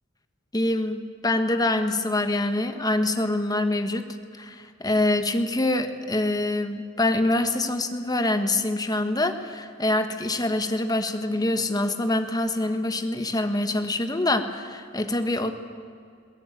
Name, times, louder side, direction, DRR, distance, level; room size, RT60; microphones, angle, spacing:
voice 1, 0.5-4.1 4.3-15.5, left 2 dB, 20° left, 8 dB, 1.4 m, -25 dB
21.5 x 19.0 x 9.2 m, 2.3 s
head